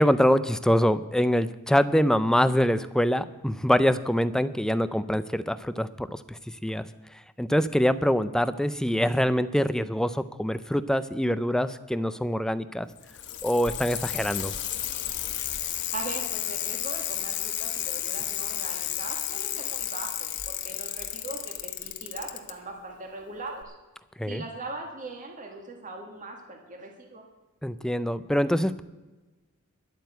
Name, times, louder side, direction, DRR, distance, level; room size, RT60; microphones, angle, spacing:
voice 1, 0.0-6.8 7.4-12.9 13.4-14.5 24.2-24.4 27.6-28.8, equal, 5° left, 13 dB, 0.4 m, -24 dB
Bicycle, 12.9-22.5 23.6-23.7, left 11 dB, 55° left, 1.1 m, -32 dB
voice 2, 15.9-23.7 24.3-27.2, right 2 dB, 35° right, 2 dB, 1.8 m, -40 dB
11.5 x 9.0 x 8.1 m, 1.2 s
head